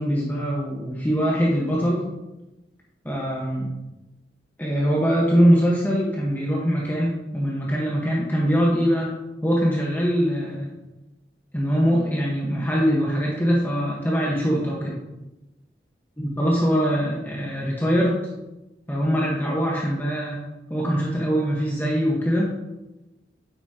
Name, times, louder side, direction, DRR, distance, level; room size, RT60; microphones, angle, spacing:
voice 1, 0.0-2.1 3.0-3.7 4.6-9.1 9.4-10.7 11.5-15.0 16.2-18.3 18.9-20.4 20.7-22.5, equal, 10° left, -4 dB, 1.4 m, -22 dB
9.8 x 8.4 x 3.0 m, 1.0 s
head